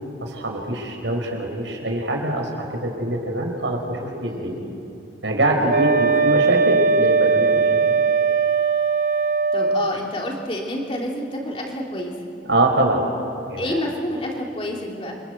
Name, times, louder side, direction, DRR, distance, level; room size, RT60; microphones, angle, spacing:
voice 1, 0.2-4.6 5.2-8.0 12.5-13.0 13.5-13.8, right 1 dB, 80° right, 2 dB, 5.1 m, -24 dB
voice 2, 4.3-4.7 9.5-12.1 13.6-15.1, left 1 dB, 30° left, -1 dB, 3.4 m, -28 dB
Wind instrument woodwind instrument, 5.7-9.9, right 4 dB, 50° right, 0.8 m, -19 dB
29.0 x 24.0 x 8.1 m, 2.6 s
head